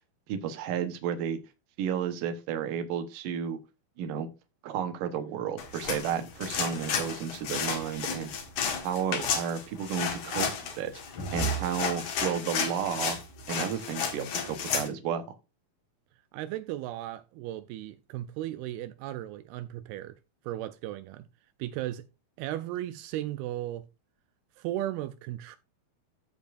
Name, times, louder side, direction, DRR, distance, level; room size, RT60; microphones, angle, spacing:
voice 1, 0.3-1.4 1.8-3.6 4.0-4.3 4.6-8.3 8.8-10.5 10.8-10.9 11.3-13.2 13.5-15.3, right 8 dB, 70° right, 2.6 m, -32 dB
sound 1, 5.6-14.9, left 5 dB, 60° left, 2.8 m, -32 dB
voice 2, 16.3-20.2 20.4-21.3 21.6-22.0 22.4-23.9 24.6-25.6, right 14 dB, 85° right, 2.5 m, -36 dB
15.0 x 5.3 x 2.6 m
omnidirectional pair, 4.3 m